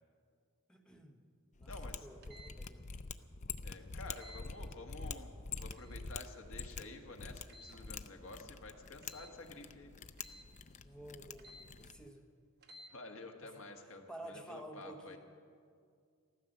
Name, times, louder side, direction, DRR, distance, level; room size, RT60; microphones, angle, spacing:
voice 1, 0.7-1.2 1.6-1.7 2.0-3.0 10.8-12.3 13.4-13.5 14.1-15.2, right 1 dB, 5° left, 3 dB, 1.2 m, -51 dB
Mechanisms, 1.6-12.1, left 5 dB, 35° left, 0.5 m, -46 dB
voice 2, 1.7-2.1 3.4-9.9 12.9-15.2, left 2 dB, 65° left, 3 dB, 1.5 m, -51 dB
sound 1, 2.2-2.5 4.2-4.4 5.7-6.0 7.5-7.8 9.0-9.3 10.2-10.5 11.4-11.7 12.6-12.9, equal, 50° right, 1.1 m, -55 dB
15.0 x 13.5 x 6.7 m, 2.2 s
head